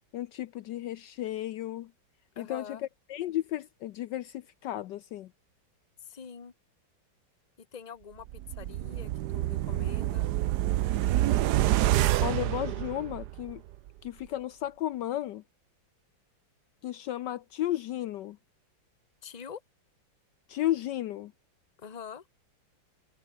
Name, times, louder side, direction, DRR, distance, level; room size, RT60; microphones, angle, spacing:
voice 1, 0.1-1.9 2.4-2.8 3.1-5.3 12.2-13.6 14.0-15.4 16.8-18.4 20.5-21.3, left 13 dB, 70° left, 1.2 m, -33 dB
voice 2, 2.3-2.8 6.0-6.5 7.6-10.3 19.2-19.6 21.8-22.3, left 7 dB, 25° left, 1.2 m, -44 dB
sound 1, 8.3-13.5 13.9-14.0, right 14 dB, 70° right, 1.1 m, -27 dB
omnidirectional pair, 2.1 m